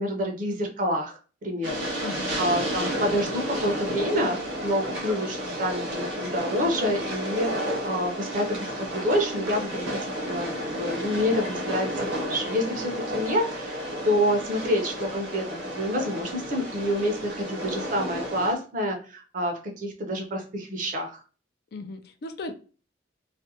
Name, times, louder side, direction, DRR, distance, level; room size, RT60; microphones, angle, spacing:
voice 1, 0.0-2.1 2.4-15.5 15.8-21.2, equal, 45° right, 3 dB, 0.6 m, -28 dB
Train, 1.6-18.5, equal, 65° right, 0.9 m, -32 dB
voice 2, 2.0-2.4 21.7-22.5, left 3 dB, 55° left, 7 dB, 0.4 m, -37 dB
2.5 x 2.1 x 2.7 m, 0.37 s
head